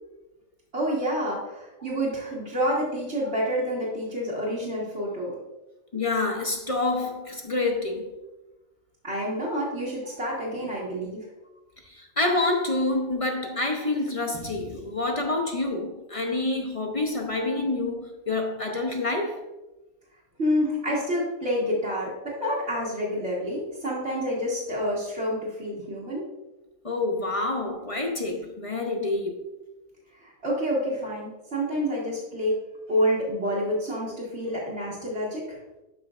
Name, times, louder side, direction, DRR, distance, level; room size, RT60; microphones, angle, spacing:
voice 1, 0.7-5.4 9.0-11.2 20.4-26.3 30.2-32.5 32.9-35.6, equal, 50° right, 2.0 m, -28 dB
voice 2, 5.9-8.1 10.6-10.7 11.8-19.4 26.8-29.4, left 2 dB, 30° left, 0.7 m, -27 dB
12.0 x 5.6 x 2.5 m
omnidirectional pair, 1.5 m